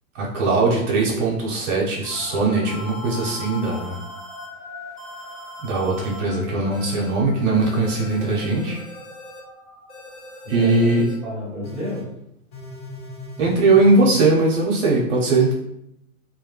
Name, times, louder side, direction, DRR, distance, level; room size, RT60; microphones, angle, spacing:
voice 1, 0.1-4.0 5.6-8.8 10.5-11.1 13.4-15.5, right 3 dB, 55° right, -3 dB, 0.8 m, -20 dB
sound 1, 2.0-2.2 2.7-4.5 5.0-6.2 6.7-7.1 7.6-9.4 9.9-11.1 11.6-12.0 12.5-14.3, left 1 dB, 35° left, 1.3 m, -40 dB
sound 2, 2.1-11.6, left 5 dB, 70° left, 0.8 m, -41 dB
voice 2, 10.6-12.0, equal, 5° right, -8 dB, 1.1 m, -30 dB
2.3 x 2.1 x 3.1 m, 0.78 s
hypercardioid pair, 125°, 42 cm